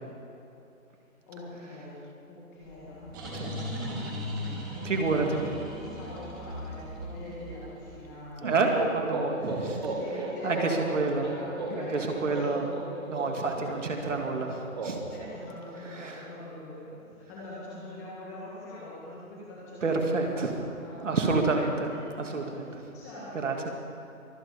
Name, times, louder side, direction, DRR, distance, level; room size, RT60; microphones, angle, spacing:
voice 1, 1.3-2.0 2.3-8.7 9.3-13.7 14.0-14.5 15.1-21.1 21.8-22.0 22.5-23.4, left 1 dB, 10° left, -7 dB, 1.7 m, -43 dB
sound 1, 2.6-8.2, equal, 15° right, 2.4 m, -38 dB
voice 2, 4.8-5.4 8.4-9.8 10.1-11.3 11.7-12.7 13.1-14.5 14.8-15.0 15.9-16.3 19.8-20.5 21.0-21.9 22.2-22.7 23.3-23.7, right 3 dB, 60° right, 2 dB, 2.3 m, -28 dB
sound 2, 8.4-16.1, right 2 dB, 30° right, 1.5 m, -36 dB
23.5 x 9.2 x 5.1 m, 2.8 s
hypercardioid pair, 170°, 42 cm